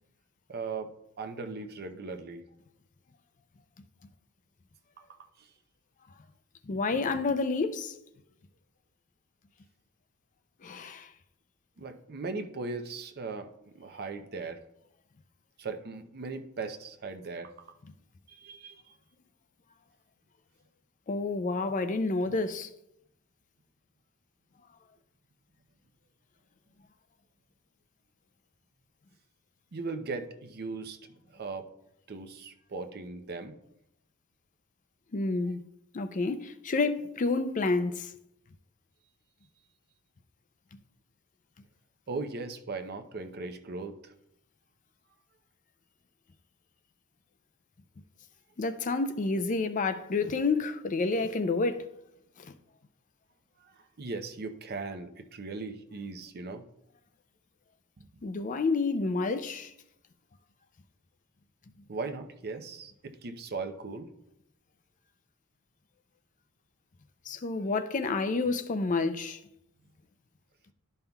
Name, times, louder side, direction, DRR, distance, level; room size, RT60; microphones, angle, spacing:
voice 1, 0.5-2.4 5.4-5.5 11.8-13.5 13.7-14.6 15.6-17.5 18.3-18.8 29.7-31.7 32.1-33.5 42.1-44.1 53.6-56.6 61.9-64.1, right 3 dB, 45° right, 0.6 m, -38 dB
voice 2, 6.7-7.9 10.6-11.1 21.1-22.7 35.1-35.6 35.9-38.1 48.6-51.8 52.4-52.5 58.2-59.7 67.3-69.4, left 3 dB, 35° left, 0.4 m, -29 dB
12.0 x 5.5 x 2.3 m
head